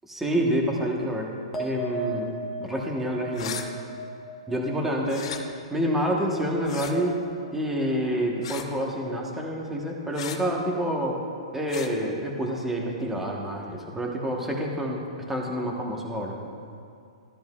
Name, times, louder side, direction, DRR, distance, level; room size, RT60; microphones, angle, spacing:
voice 1, 0.1-1.3 1.6-2.3 2.6-3.6 4.5-5.2 5.7-7.2 7.5-11.2 11.5-15.0 15.3-16.4, equal, 5° right, -1 dB, 1.3 m, -28 dB
sound 1, 1.5-8.2 8.5-9.1, right 2 dB, 10° left, 1.0 m, -39 dB
sound 2, 3.3-3.7 5.1-5.4 6.6-6.9 8.4-8.7 10.1-10.4 11.7-11.9, left 8 dB, 60° left, 0.9 m, -36 dB
14.0 x 10.0 x 2.4 m, 2.4 s
hypercardioid pair, 145°, 3 cm